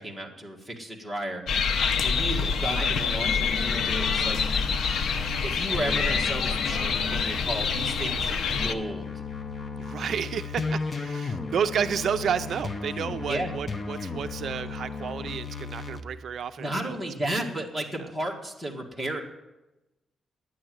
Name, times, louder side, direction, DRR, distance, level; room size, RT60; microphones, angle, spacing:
voice 1, 0.0-1.7 2.0-4.4 5.4-9.0 13.3-13.5 16.6-19.2, right 1 dB, ahead, -2 dB, 1.8 m, -33 dB
sound 1, 1.5-8.7, left 5 dB, 70° left, 0.7 m, -26 dB
sound 2, 3.2-8.2 8.5-16.0, left 4 dB, 30° left, 0.7 m, -35 dB
voice 2, 9.8-17.0 17.5-17.6, right 7 dB, 60° right, 10 dB, 0.4 m, -31 dB
11.0 x 9.6 x 7.8 m, 1.0 s
wide cardioid pair, 155°, 0 cm